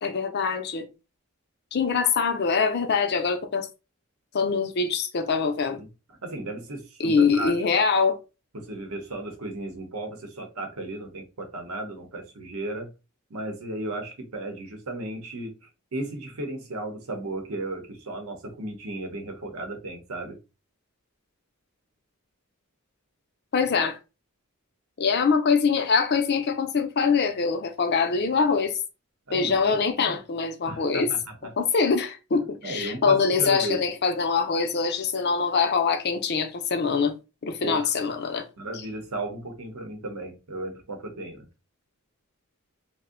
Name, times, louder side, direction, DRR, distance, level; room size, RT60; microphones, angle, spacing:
voice 1, 0.0-0.9 1.7-3.7 4.3-5.8 7.0-8.2 23.5-24.0 25.0-28.7 29.3-31.1 31.6-37.1 37.4-38.5, left 5 dB, 50° left, 0.5 m, -24 dB
voice 2, 5.7-7.5 8.5-12.9 13.3-20.4 29.3-30.2 30.7-31.5 32.3-33.8 37.6-37.8 38.6-41.5, right 2 dB, 75° right, 0.8 m, -35 dB
2.6 x 2.1 x 3.6 m
head